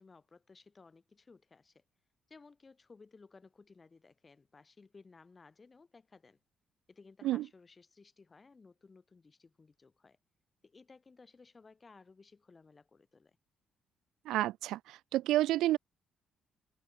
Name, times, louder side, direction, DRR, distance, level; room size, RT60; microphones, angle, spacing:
voice 1, 0.0-1.8 2.3-6.4 6.9-10.2 10.6-13.4, left 4 dB, 30° left, 4.7 m, -59 dB
voice 2, 14.3-15.8, right 15 dB, 90° right, 0.5 m, -30 dB
cardioid pair, 90°, 0 cm